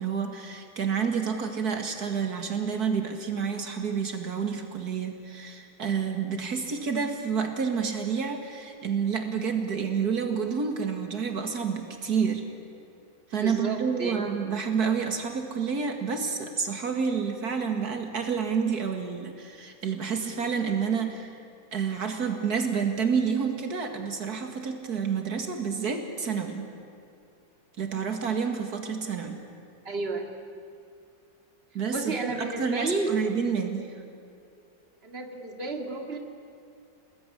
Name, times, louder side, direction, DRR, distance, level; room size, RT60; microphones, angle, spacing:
voice 1, 0.0-12.5 13.3-21.3 21.7-26.7 27.8-29.4 31.7-33.9, right 6 dB, 80° right, 5 dB, 2.5 m, -29 dB
voice 2, 13.4-14.3 29.8-30.3 31.9-33.1 35.0-36.2, right 3 dB, 40° right, 3 dB, 2.8 m, -32 dB
28.0 x 20.5 x 10.0 m, 2.5 s
omnidirectional pair, 1.6 m